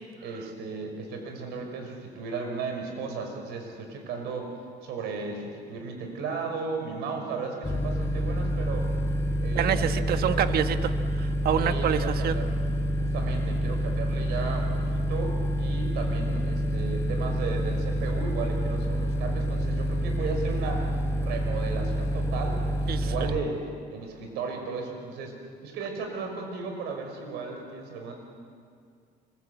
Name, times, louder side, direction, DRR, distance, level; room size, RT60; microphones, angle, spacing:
voice 1, 0.2-4.5 4.8-8.9 9.4-10.5 11.6-12.6 12.9-20.9 21.2-23.6 23.9-25.4 25.6-28.1, right 4 dB, 85° right, 3 dB, 5.3 m, -35 dB
sound 1, 7.6-23.3, equal, 15° left, 4.3 m, -28 dB
voice 2, 9.5-12.4 22.9-23.1, right 9 dB, 65° right, 9 dB, 1.4 m, -27 dB
25.0 x 22.5 x 8.2 m, 2.2 s
cardioid pair, 110°, 17 cm